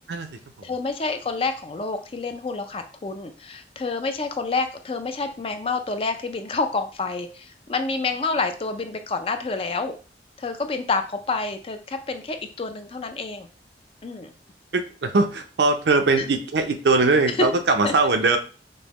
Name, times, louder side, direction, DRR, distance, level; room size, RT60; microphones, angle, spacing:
voice 1, 0.1-0.7 14.7-18.4, right 3 dB, 80° right, 6 dB, 0.5 m, -21 dB
voice 2, 0.6-10.0 10.4-13.5 14.0-14.3 16.2-16.3 17.4-17.5 17.8-17.9, left 3 dB, 30° left, 8 dB, 0.4 m, -28 dB
5.3 x 2.1 x 3.0 m, 0.37 s
head